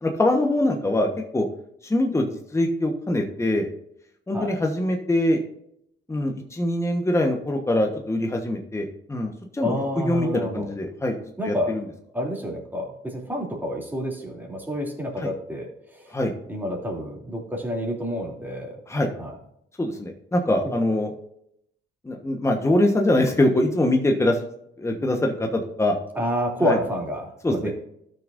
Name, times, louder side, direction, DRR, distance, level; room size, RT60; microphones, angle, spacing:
voice 1, 0.0-1.1 1.3-1.4 1.8-3.7 4.3-5.4 6.1-11.1 11.4-11.8 15.2-15.3 16.1-16.3 18.9-19.1 19.8-21.1 22.0-24.4 24.8-26.0 26.6-26.8 27.4-27.7, left 1 dB, 15° left, 2 dB, 1.2 m, -23 dB
voice 2, 9.6-10.7 11.4-11.7 12.1-16.1 16.5-18.8 19.2-19.4 20.6-20.7 26.1-27.7, equal, 10° right, -1 dB, 2.9 m, -29 dB
13.0 x 6.3 x 2.6 m, 0.74 s
cardioid pair, 90°, 20 cm